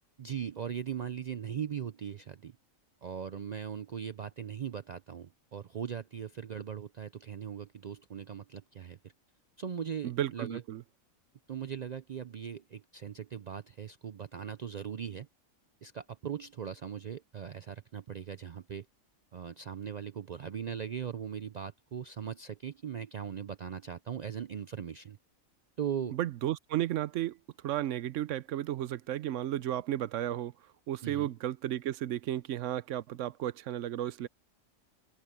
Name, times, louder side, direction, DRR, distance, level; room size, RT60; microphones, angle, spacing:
voice 1, 0.2-2.6 3.0-9.0 9.6-10.6 11.5-15.3 15.8-18.9 19.3-25.2 25.8-26.2 31.0-31.3, right 8 dB, 85° right, 0.3 m, -39 dB
voice 2, 10.0-10.8 26.1-27.4 27.6-30.5 30.9-34.3, right 12 dB, 70° right, 0.9 m, -33 dB
open air
omnidirectional pair, 1.4 m